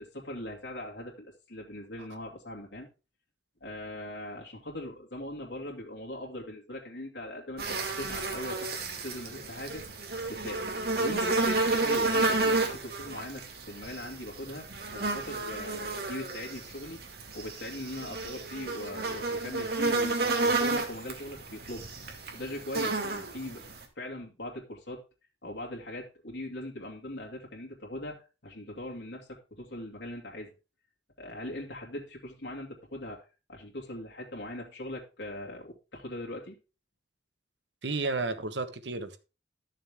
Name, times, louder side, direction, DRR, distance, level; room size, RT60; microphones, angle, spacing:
voice 1, 0.0-2.9 3.6-9.9 10.3-17.0 17.3-21.9 22.3-23.6 24.0-25.0 25.4-30.5 31.2-36.6, left 1 dB, 90° left, 2.3 m, -40 dB
sound 1, 7.6-23.8, right 3 dB, 60° right, 2.3 m, -31 dB
voice 2, 37.8-39.2, right 3 dB, 85° right, 1.2 m, -32 dB
12.5 x 6.6 x 3.6 m
head